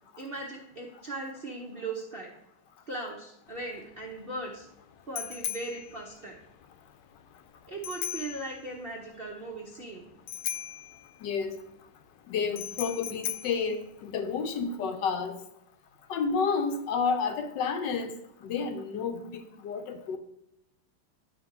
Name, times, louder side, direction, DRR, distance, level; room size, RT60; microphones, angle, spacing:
voice 1, 0.2-2.3 2.9-4.7 5.1-6.4 7.7-10.1, right 2 dB, 80° right, -3 dB, 0.5 m, -38 dB
Bicycle bell, 3.5-14.6, left 11 dB, 85° left, 1.5 m, -40 dB
voice 2, 11.2-11.6 12.3-15.4 16.1-18.2 18.4-20.2, left 5 dB, 70° left, 7 dB, 1.1 m, -30 dB
10.0 x 3.4 x 5.8 m, 0.82 s
omnidirectional pair, 2.4 m